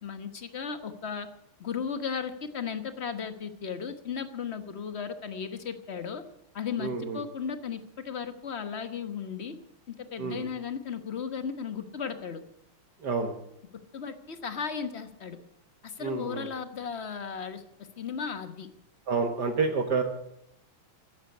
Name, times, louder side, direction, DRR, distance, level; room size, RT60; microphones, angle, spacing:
voice 1, 0.0-1.3 1.6-6.2 6.5-9.6 9.9-12.4 13.9-15.4 15.8-17.6 18.0-18.7, left 6 dB, 35° left, 9 dB, 1.2 m, -35 dB
voice 2, 6.8-7.2 10.2-10.4 13.0-13.3 16.0-16.5 19.1-20.0, right 4 dB, 55° right, 5 dB, 1.8 m, -29 dB
14.5 x 10.0 x 9.7 m, 0.79 s
omnidirectional pair, 2.4 m